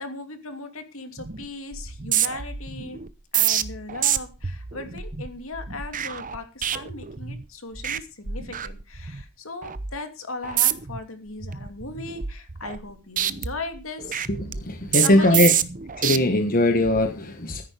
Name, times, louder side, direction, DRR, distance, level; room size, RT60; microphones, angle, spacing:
voice 1, 0.0-3.0 3.3-14.3 15.0-15.6, left 2 dB, 70° left, 7 dB, 2.8 m, -37 dB
sound 1, 1.2-1.5 1.7-7.5 7.8-8.0 8.3-9.2 9.6-9.9 10.4-11.0 11.4-12.9 13.2-16.2 16.7-17.0, right 10 dB, 40° right, 0.9 m, -27 dB
voice 2, 14.3-15.5 16.0-17.6, left 1 dB, 40° left, 6 dB, 1.4 m, -20 dB
14.0 x 10.5 x 5.0 m, 0.32 s
head